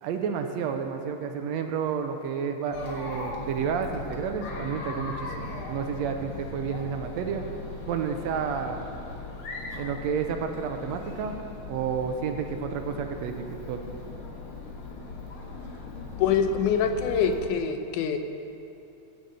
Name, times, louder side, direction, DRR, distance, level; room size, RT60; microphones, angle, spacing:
voice 1, 0.0-7.4 7.9-8.9 9.8-11.4 11.7-13.8, right 6 dB, 75° right, 5 dB, 1.8 m, -30 dB
Chatter, 2.7-17.5, left 3 dB, 50° left, 1.9 m, -39 dB
voice 2, 16.2-18.2, left 6 dB, 90° left, 7 dB, 2.2 m, -24 dB
16.0 x 7.6 x 5.6 m, 2.9 s
omnidirectional pair, 3.4 m